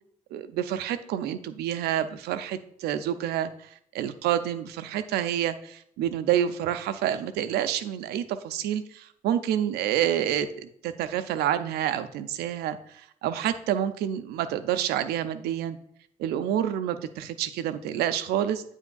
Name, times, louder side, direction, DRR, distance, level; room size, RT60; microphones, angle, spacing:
voice 1, 0.3-3.5 3.9-12.8 13.2-15.8 16.2-18.6, right 10 dB, 75° right, 11 dB, 0.5 m, -28 dB
8.8 x 7.2 x 2.3 m, 0.67 s
hypercardioid pair, 40°, 17 cm